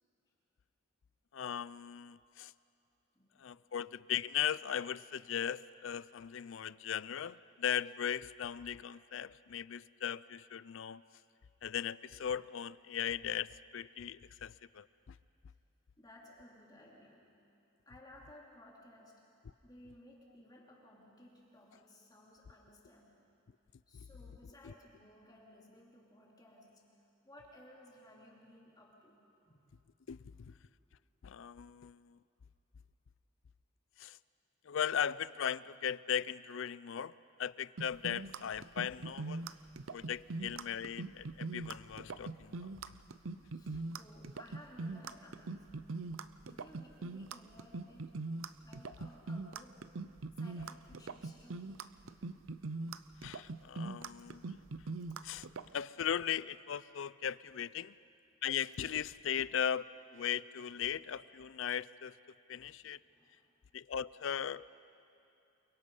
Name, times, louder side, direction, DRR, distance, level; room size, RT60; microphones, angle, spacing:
voice 1, 1.3-2.5 3.4-11.0 11.6-14.8 24.6-24.7 30.1-30.2 31.2-32.0 34.0-34.1 34.7-37.1 37.4-39.4 39.9-42.5 53.2-54.4 55.2-55.4 55.7-57.9 58.4-59.9 60.1-62.1 62.5-63.0 63.7-64.6, left 9 dB, 70° left, 19 dB, 0.4 m, -38 dB
voice 2, 16.0-17.4 17.9-19.3 19.6-23.3 23.9-26.9 27.2-29.7 30.3-30.7 43.5-48.2 48.6-49.9 50.4-52.0 54.0-54.1 62.5-63.5, left 1 dB, 20° left, -3 dB, 2.8 m, -58 dB
sound 1, 37.8-55.7, right 3 dB, 75° right, 0.7 m, -41 dB
29.0 x 23.0 x 5.5 m, 2.7 s
head